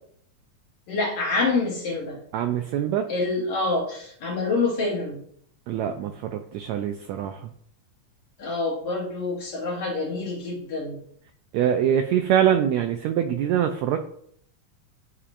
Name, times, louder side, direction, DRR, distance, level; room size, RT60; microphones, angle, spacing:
voice 1, 0.9-2.2 3.1-5.2 8.4-11.0, left 3 dB, 60° left, -1 dB, 1.8 m, -26 dB
voice 2, 2.3-3.1 5.7-7.5 11.5-14.1, right 9 dB, 85° right, 7 dB, 1.6 m, -24 dB
11.5 x 5.0 x 2.5 m, 0.66 s
omnidirectional pair, 3.6 m